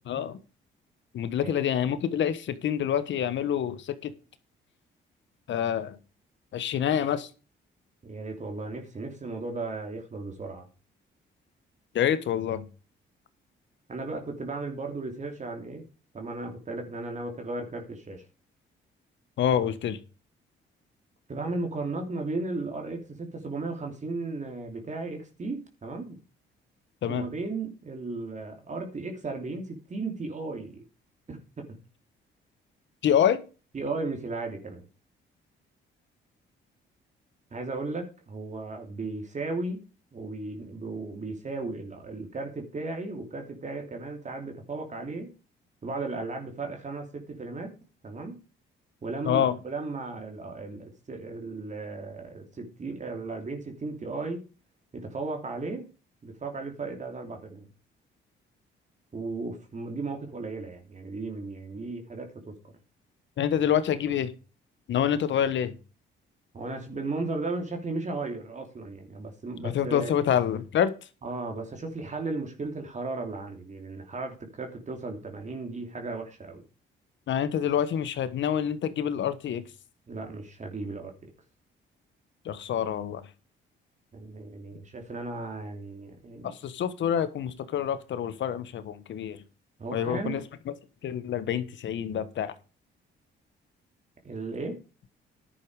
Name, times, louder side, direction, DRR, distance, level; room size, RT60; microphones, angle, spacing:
voice 1, 0.1-0.4 1.1-4.1 5.5-6.0 6.5-7.3 11.9-12.7 19.4-20.0 27.0-27.2 33.0-33.4 49.2-49.5 63.4-64.3 64.9-65.8 69.6-70.9 77.3-79.6 82.4-83.2 86.4-89.4 89.9-90.4 91.0-92.5, left 9 dB, 70° left, 1.4 m, -27 dB
voice 2, 8.0-10.7 13.9-15.8 16.1-18.2 19.6-19.7 21.3-26.2 27.1-30.8 31.3-31.8 33.7-34.8 37.5-39.8 40.1-45.3 45.8-47.7 48.0-48.4 49.0-54.4 54.9-55.9 56.2-57.7 59.1-62.7 66.5-70.1 71.2-76.6 80.1-81.3 84.1-86.5 89.8-90.4 94.2-94.8, right 3 dB, 35° right, 2.9 m, -35 dB
11.0 x 8.4 x 4.9 m
cardioid pair, 90°, 20 cm